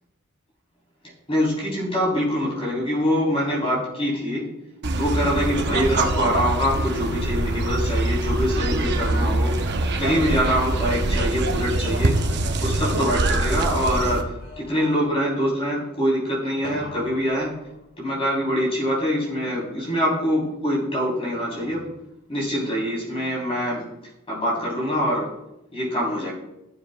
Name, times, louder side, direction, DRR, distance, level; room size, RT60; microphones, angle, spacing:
voice 1, 1.3-4.5 5.0-9.6 10.0-12.2 12.6-17.6 18.0-21.9 22.3-23.8 24.3-25.3 25.7-26.3, equal, 25° left, -5 dB, 3.5 m, -24 dB
sound 1, 4.8-14.2, right 2 dB, 50° right, 0.8 m, -24 dB
sound 2, 9.1-11.0 11.5-13.9 14.3-15.3 16.6-18.2 21.6-22.2, left 2 dB, 60° left, 2.7 m, -45 dB
15.0 x 7.1 x 2.3 m, 0.89 s
head